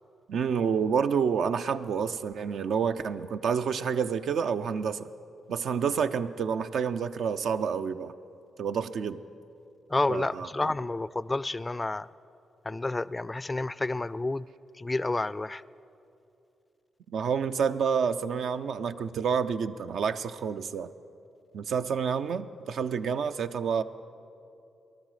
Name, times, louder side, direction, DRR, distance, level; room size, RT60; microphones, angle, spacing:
voice 1, 0.3-5.1 5.5-8.1 8.6-9.2 10.1-10.7 17.1-20.9 21.5-23.8, right 6 dB, 75° right, 10 dB, 0.4 m, -29 dB
voice 2, 9.9-12.1 12.7-14.5 14.8-15.6, left 2 dB, 25° left, 19 dB, 0.3 m, -30 dB
19.0 x 12.0 x 4.8 m, 2.7 s
supercardioid pair, 55°, 0 cm